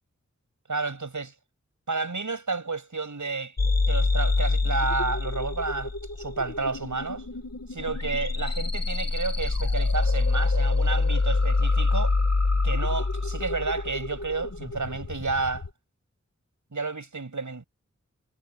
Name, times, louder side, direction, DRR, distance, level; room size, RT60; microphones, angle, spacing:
voice 1, 0.7-1.3 1.9-3.6 3.9-7.3 7.7-12.1 12.6-15.6 16.7-17.7, right 3 dB, 85° right, 7.8 m, -31 dB
sound 1, 3.6-15.7, left 3 dB, 60° left, 1.9 m, -26 dB
wide cardioid pair, 45°, 29 cm